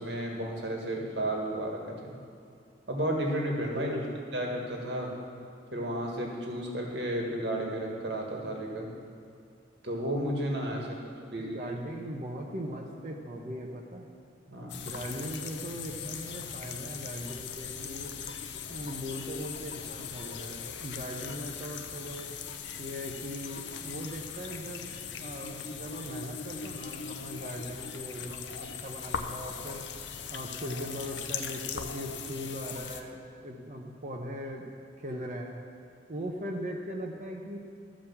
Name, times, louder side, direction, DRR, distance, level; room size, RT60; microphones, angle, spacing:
voice 1, 0.0-2.2 2.9-4.0 4.3-5.1 5.7-8.9 9.8-11.0 11.3-11.6 14.5-14.8, right 1 dB, 65° right, 0 dB, 1.7 m, -32 dB
voice 2, 3.7-4.1 10.7-11.0 11.4-14.1 14.8-18.1 18.7-22.3 22.8-29.8 30.3-34.7 35.0-35.6 36.1-37.6, equal, 40° right, 0 dB, 0.8 m, -39 dB
sound 1, 14.7-33.0, left 7 dB, 75° left, 0.6 m, -40 dB
13.5 x 5.1 x 7.1 m, 2.3 s
head